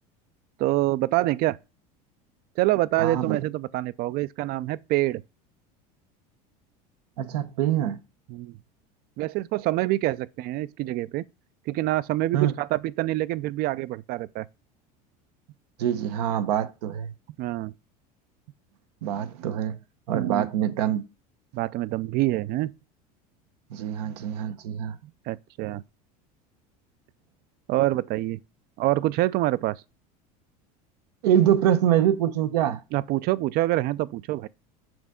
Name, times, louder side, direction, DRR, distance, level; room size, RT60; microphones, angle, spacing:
voice 1, 0.6-1.6 2.6-5.2 8.3-8.6 9.2-11.2 11.7-14.5 17.4-17.7 20.1-20.5 21.5-22.7 25.0-25.8 27.7-28.4 28.8-29.8 32.9-34.5, right 17 dB, 50° right, 0.4 m, -26 dB
voice 2, 3.0-3.4 7.2-8.0 12.3-12.5 15.8-17.1 19.0-19.8 20.1-21.1 23.7-25.0 31.2-32.8, right 10 dB, 85° right, 0.8 m, -24 dB
6.1 x 5.3 x 3.6 m
supercardioid pair, 110°, 20 cm